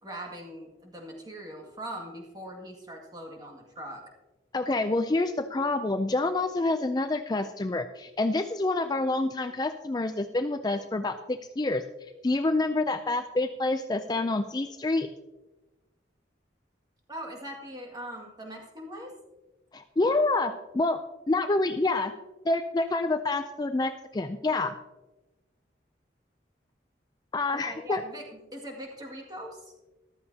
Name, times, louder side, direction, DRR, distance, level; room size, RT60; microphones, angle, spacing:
voice 1, 0.0-4.0 17.1-19.1 27.5-29.7, equal, 20° right, 0 dB, 2.0 m, -41 dB
voice 2, 4.5-11.8 12.2-15.1 19.7-21.0 21.3-22.1 22.5-24.8 27.3-28.0, left 2 dB, 20° left, 8 dB, 0.4 m, -27 dB
14.0 x 12.5 x 2.8 m, 1.1 s
head